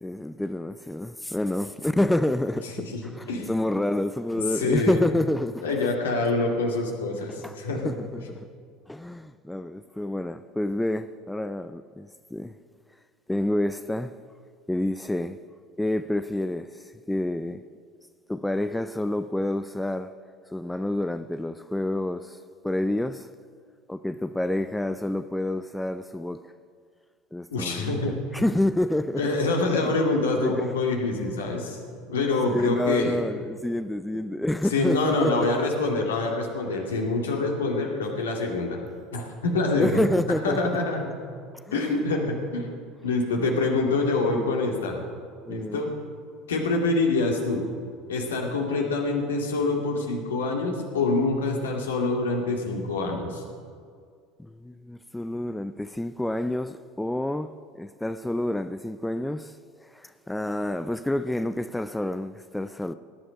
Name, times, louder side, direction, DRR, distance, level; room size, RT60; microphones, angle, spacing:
voice 1, 0.0-5.9 7.2-7.6 7.8-8.5 8.9-12.5 13.3-14.2 14.7-15.4 15.8-17.6 18.3-20.1 20.5-22.4 22.6-23.3 23.9-26.5 27.3-29.3 29.8-29.9 30.4-30.7 32.5-35.6 39.8-40.6 41.5-42.0 44.3-44.5 45.5-45.8 54.4-59.6 59.8-62.9, left 1 dB, 5° left, 0.5 m, -28 dB
voice 2, 4.5-5.0 5.6-7.9 27.5-28.2 29.2-31.8 32.1-33.2 34.7-38.8 39.1-40.1 40.4-41.0 41.7-42.7 43.0-45.0 45.5-45.9 46.5-47.7 48.1-53.4, left 3 dB, 75° left, 2.4 m, -26 dB
18.5 x 11.0 x 5.1 m
figure-of-eight pair, 70°, 0 cm